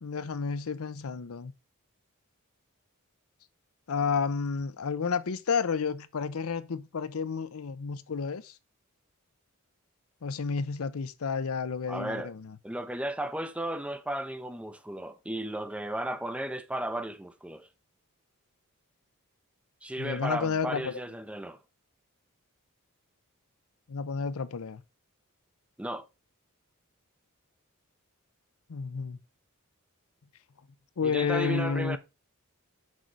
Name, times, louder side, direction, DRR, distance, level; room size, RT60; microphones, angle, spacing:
voice 1, 0.0-1.5 3.9-8.5 10.2-12.5 20.0-21.0 23.9-24.8 28.7-29.2 31.0-32.0, left 5 dB, 70° left, 0.6 m, -31 dB
voice 2, 11.9-12.3 12.6-17.7 19.8-21.6 25.8-26.1 31.0-32.0, right 1 dB, 5° right, 0.5 m, -34 dB
6.3 x 5.2 x 4.5 m
head